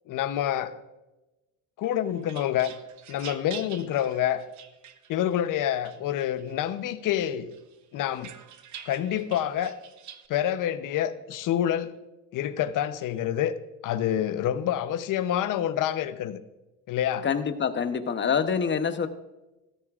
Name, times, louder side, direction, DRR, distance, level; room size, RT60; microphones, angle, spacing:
voice 1, 0.1-0.8 1.8-2.7 3.1-4.4 5.1-7.5 7.9-8.3 8.9-9.7 10.3-11.9 12.3-13.6 13.8-16.4 16.9-17.3, left 11 dB, 65° left, 0.8 m, -27 dB
sound 1, 1.8-5.4 5.8-6.7 7.2-10.3, right 9 dB, 55° right, 0.9 m, -46 dB
voice 2, 17.2-19.1, left 6 dB, 30° left, 0.9 m, -26 dB
13.5 x 13.0 x 2.5 m
cardioid pair, 95°, 35 cm